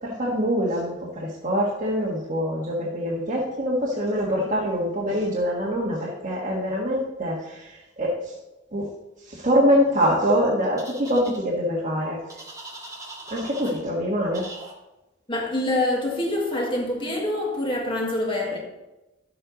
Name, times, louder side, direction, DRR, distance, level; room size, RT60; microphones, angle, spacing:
voice 1, 0.0-8.3 8.7-8.9 9.2-12.2 13.3-14.5, equal, 40° right, 1.6 m, -24 dB
sound 1, 10.8-11.4 12.3-13.8 14.3-14.7, right 2 dB, 20° right, 1.7 m, -40 dB
voice 2, 15.3-18.6, left 1 dB, 25° left, 1.7 m, -25 dB
11.0 x 7.8 x 4.0 m
head